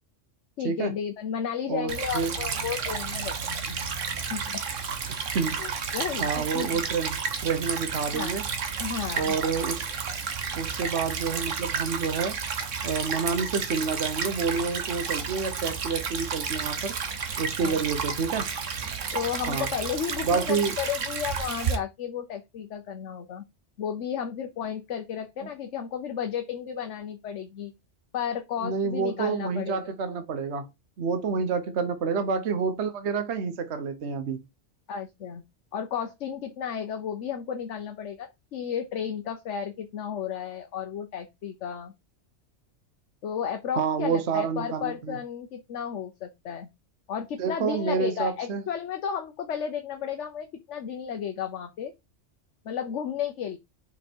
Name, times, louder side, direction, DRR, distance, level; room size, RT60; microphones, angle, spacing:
voice 1, 0.6-3.8 4.3-4.6 5.6-6.8 8.1-8.4 8.8-9.4 17.6-17.8 19.1-23.4 23.8-27.7 28.1-29.8 32.1-32.2 34.9-35.4 35.7-41.9 43.2-46.7 47.1-51.9 52.6-53.6, left 8 dB, 75° left, 1.2 m, -33 dB
voice 2, 1.7-2.3 5.3-5.8 6.2-8.4 9.2-9.8 10.5-12.4 12.8-16.9 17.4-18.5 19.5-19.7 20.2-20.7 28.6-30.7 31.0-34.4 43.8-45.2 47.4-48.6, right 5 dB, 65° right, 1.1 m, -28 dB
Stream / Trickle dribble, 1.9-21.8, right 6 dB, 90° right, 1.5 m, -31 dB
5.5 x 5.2 x 4.4 m
omnidirectional pair, 1.3 m